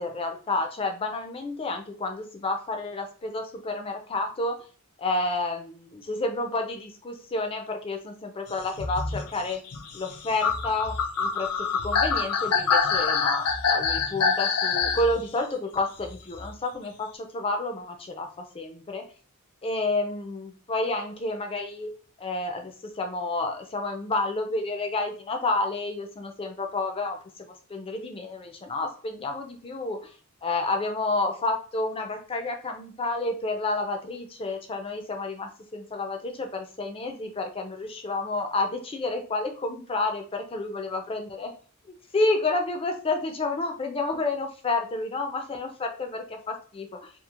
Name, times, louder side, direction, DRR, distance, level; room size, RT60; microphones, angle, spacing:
voice 1, 0.0-4.6 5.0-9.6 9.9-19.0 19.6-21.9 22.2-30.1 30.4-41.5 41.8-47.1, left 2 dB, 25° left, 4 dB, 0.4 m, -30 dB
sound 1, 8.7-15.1 16.3-16.4, left 5 dB, 80° left, 0.5 m, -25 dB
2.9 x 2.4 x 2.4 m, 0.39 s
head